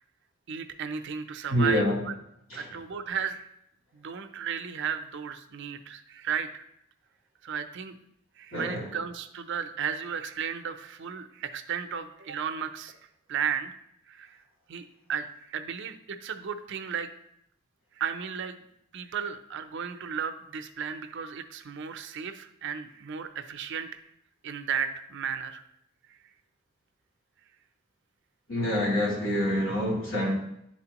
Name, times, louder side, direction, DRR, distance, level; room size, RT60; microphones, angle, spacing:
voice 1, 0.5-2.1 2.5-3.5 3.9-6.6 7.4-7.9 8.4-12.9 13.3-13.8 14.1-14.4 14.7-14.8 15.1-17.1 18.0-18.7 18.9-24.0 24.4-25.6 26.1-26.2, right 7 dB, 60° right, 8 dB, 0.5 m, -34 dB
voice 2, 1.5-2.0 2.5-2.7 8.5-8.9 28.5-30.3, equal, 90° left, -4 dB, 2.4 m, -26 dB
10.5 x 4.3 x 2.9 m, 0.78 s
head